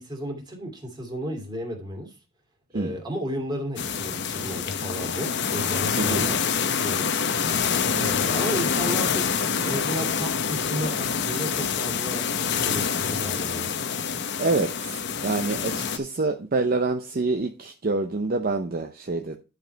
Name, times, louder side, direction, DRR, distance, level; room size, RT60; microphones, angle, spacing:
voice 1, 0.0-2.2 2.7-7.1 8.0-9.2 9.6-12.3 12.6-13.7, equal, 20° right, 2.6 m, -33 dB
sound 1, 3.8-16.0, left 6 dB, 55° left, 0.8 m, -26 dB
voice 2, 14.4-19.4, right 3 dB, 45° right, 0.6 m, -26 dB
10.5 x 5.1 x 4.5 m
head